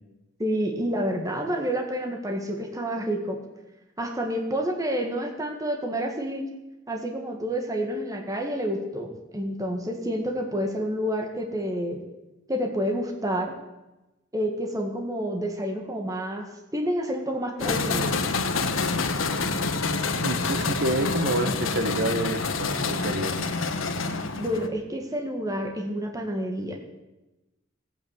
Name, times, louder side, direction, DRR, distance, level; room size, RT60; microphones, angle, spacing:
voice 1, 0.4-3.4 4.0-6.5 6.9-12.0 12.5-13.5 14.3-18.2 24.4-26.8, equal, 20° right, 3 dB, 1.8 m, -29 dB
sound 1, 17.6-24.7, left 4 dB, 85° left, 1.4 m, -27 dB
voice 2, 20.1-23.6, right 1 dB, 60° right, 8 dB, 1.4 m, -28 dB
17.0 x 9.0 x 8.2 m, 1.0 s
head